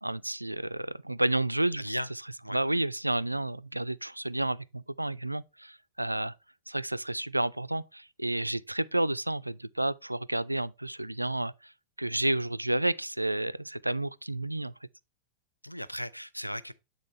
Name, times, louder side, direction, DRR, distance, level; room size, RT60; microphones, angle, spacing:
voice 1, 0.0-1.8 2.5-6.3 6.7-11.7 12.0-14.7, right 1 dB, 85° right, 0.3 m, -31 dB
voice 2, 1.8-2.1 2.4-2.6 15.6-16.7, equal, 90° left, 0.4 m, -36 dB
8.6 x 3.8 x 4.1 m
figure-of-eight pair, 90°, 0 cm